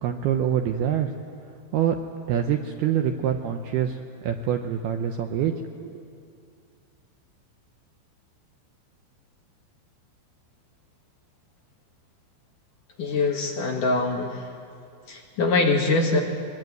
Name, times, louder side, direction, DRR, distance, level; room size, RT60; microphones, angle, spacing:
voice 1, 0.0-1.1 1.7-2.0 2.3-5.6 5.8-6.0, right 9 dB, 80° right, 5 dB, 2.4 m, -25 dB
voice 2, 13.0-14.4 15.1-16.2, left 3 dB, 55° left, 1 dB, 2.5 m, -23 dB
23.0 x 22.5 x 9.4 m, 2.3 s
omnidirectional pair, 5.5 m